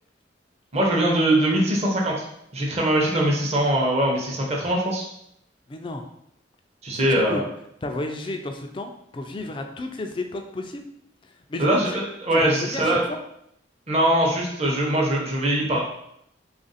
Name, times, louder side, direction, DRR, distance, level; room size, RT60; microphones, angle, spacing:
voice 1, 0.7-2.1 2.5-5.1 6.8-7.4 11.6-13.0 13.9-15.8, right 1 dB, 35° right, -2 dB, 0.7 m, -22 dB
voice 2, 5.7-6.0 6.9-7.0 7.3-7.4 7.8-10.8 11.2-12.0 12.3-13.2, left 2 dB, 25° left, 4 dB, 0.3 m, -32 dB
3.4 x 2.5 x 4.0 m, 0.76 s
head